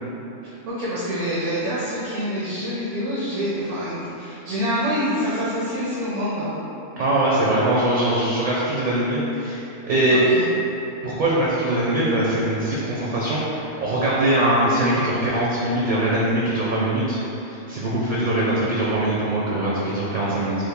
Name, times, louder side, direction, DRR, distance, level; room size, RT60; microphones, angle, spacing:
voice 1, 0.4-6.6 10.1-10.5, equal, 85° right, -8 dB, 1.0 m, -26 dB
voice 2, 7.0-10.2 11.0-17.2 17.4-20.6, right 1 dB, 55° right, -6 dB, 0.5 m, -22 dB
3.1 x 2.4 x 3.5 m, 2.9 s
omnidirectional pair, 1.2 m